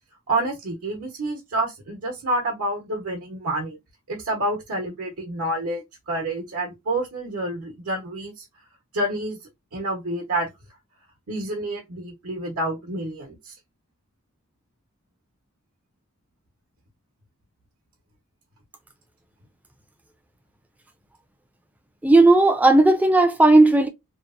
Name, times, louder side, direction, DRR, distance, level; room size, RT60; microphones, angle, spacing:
voice 1, 0.3-3.8 4.1-8.4 8.9-9.4 9.7-10.5 11.3-13.5, right 1 dB, 80° right, 0.8 m, -28 dB
voice 2, 22.0-23.9, right 2 dB, 5° right, 0.3 m, -15 dB
2.9 x 2.0 x 2.4 m
head